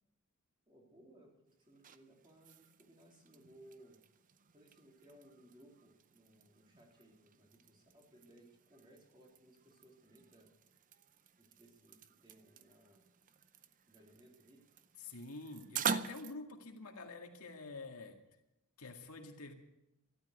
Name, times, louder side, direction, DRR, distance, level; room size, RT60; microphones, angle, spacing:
voice 1, 0.7-4.0 4.5-10.5 11.4-13.0 13.9-14.7, right 1 dB, 20° right, -1 dB, 3.7 m, -62 dB
sound 1, 1.5-16.3, right 6 dB, 35° right, 0.6 m, -46 dB
voice 2, 15.0-18.2 18.8-19.5, left 3 dB, 80° left, 3 dB, 2.0 m, -48 dB
13.5 x 12.0 x 8.2 m, 0.87 s
head